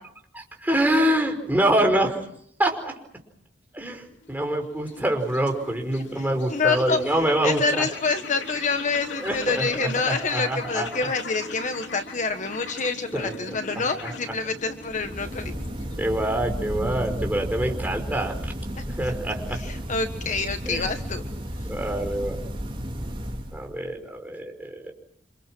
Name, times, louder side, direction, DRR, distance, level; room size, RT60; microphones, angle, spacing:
voice 1, 0.3-2.2 2.6-3.0 3.7-7.9 9.2-11.1 13.1-13.3 14.0-14.1 16.0-18.5 19.0-19.6 20.7-20.9 21.7-22.4 23.5-24.9, right 1 dB, 10° right, 3 dB, 5.2 m, -25 dB
sound 1, 4.1-17.5, left 3 dB, 85° left, 2.9 m, -40 dB
voice 2, 6.2-7.0 7.4-15.5 19.5-21.2, left 4 dB, 45° left, 7 dB, 1.4 m, -27 dB
sound 2, 14.7-23.9, equal, 30° right, 4.5 m, -33 dB
28.5 x 27.0 x 6.1 m, 0.68 s
head